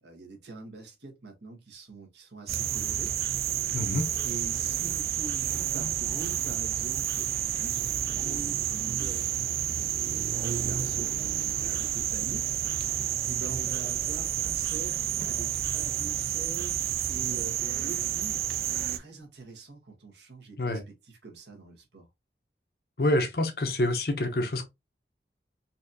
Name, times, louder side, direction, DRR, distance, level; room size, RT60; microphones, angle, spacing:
voice 1, 0.0-3.1 4.2-9.8 10.3-11.1 11.6-13.0 13.2-22.1, right 3 dB, 80° right, 1.3 m, -44 dB
sound 1, 2.5-19.0, right 10 dB, 55° right, 0.3 m, -30 dB
voice 2, 3.7-4.1 20.6-20.8 23.0-24.6, left 1 dB, 60° left, 0.8 m, -27 dB
4.1 x 2.7 x 2.6 m
head